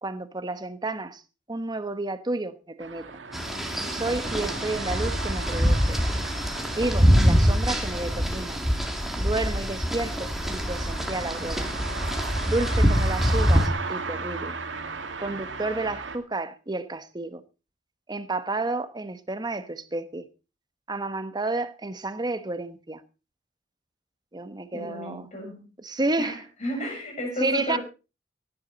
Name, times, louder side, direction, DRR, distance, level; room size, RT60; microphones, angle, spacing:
voice 1, 0.0-1.2 1.5-3.1 3.9-6.0 6.7-8.6 9.2-11.7 12.4-14.6 15.2-17.4 18.1-20.2 20.9-23.0 24.3-25.3 25.8-26.4 27.4-27.8, right 2 dB, 25° right, 1.0 m, -31 dB
sound 1, 2.8-16.2, right 4 dB, 85° right, 2.1 m, -37 dB
sound 2, 3.3-13.7, equal, ahead, 2.3 m, -24 dB
voice 2, 24.7-25.7 26.2-27.8, equal, 40° left, 7.1 m, -33 dB
17.5 x 11.0 x 4.0 m
head